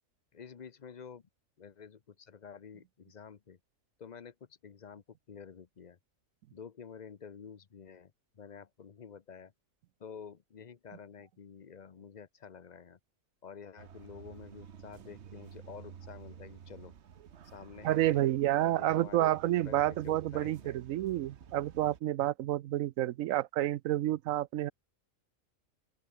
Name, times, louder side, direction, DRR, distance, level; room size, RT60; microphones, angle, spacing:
voice 1, 0.3-1.2 1.6-3.6 4.0-4.3 4.6-6.0 6.5-9.5 10.0-13.0 13.4-16.9 17.4-18.2 18.6-19.4 19.6-20.8, left 6 dB, 40° left, 0.8 m, -49 dB
sound 1, 13.8-22.0, right 8 dB, 60° right, 1.3 m, -51 dB
voice 2, 17.8-24.7, right 14 dB, 85° right, 1.0 m, -29 dB
open air
omnidirectional pair, 1.3 m